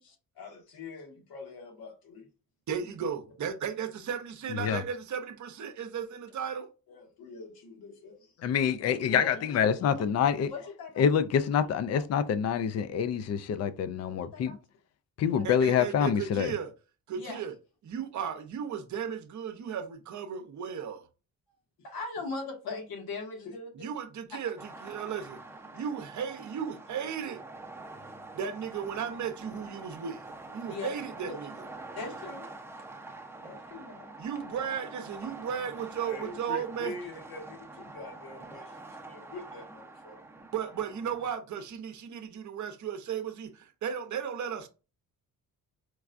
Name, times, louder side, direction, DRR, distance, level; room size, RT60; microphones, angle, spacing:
voice 1, 0.0-2.3 2.8-2.9 6.9-8.3 8.8-9.6 10.5-11.0 11.5-11.6 11.9-12.1 14.2-14.6 15.2-15.5 17.1-17.4 21.8-23.7 24.3-24.4 25.7-25.8 30.7-30.9 31.9-32.5 33.4-34.1 36.0-40.2, left 3 dB, 80° left, 1.5 m, -42 dB
voice 2, 2.7-6.7 15.4-16.7 17.1-17.5 17.8-21.1 23.8-25.4 25.7-27.4 28.3-31.5 34.2-36.9 40.5-44.7, right 7 dB, 55° right, 0.7 m, -35 dB
voice 3, 8.4-10.5 11.0-14.6 15.2-16.5, left 7 dB, 45° left, 0.4 m, -26 dB
sound 1, 24.6-41.3, right 2 dB, 5° right, 0.7 m, -46 dB
4.6 x 2.2 x 2.5 m
cardioid pair, 105°, 36 cm